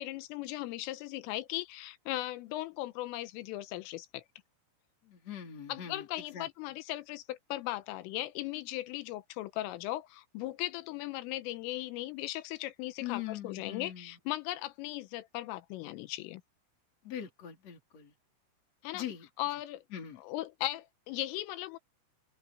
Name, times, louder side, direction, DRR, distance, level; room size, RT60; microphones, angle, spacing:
voice 1, 0.0-4.2 5.7-16.4 18.8-19.1 19.4-19.8 20.2-21.8, left 16 dB, 85° left, 3.5 m, -38 dB
voice 2, 5.0-6.1 6.3-6.5 13.0-14.1 17.0-18.1 18.9-19.3 19.9-20.2, left 10 dB, 35° left, 4.8 m, -41 dB
open air
omnidirectional pair, 5.8 m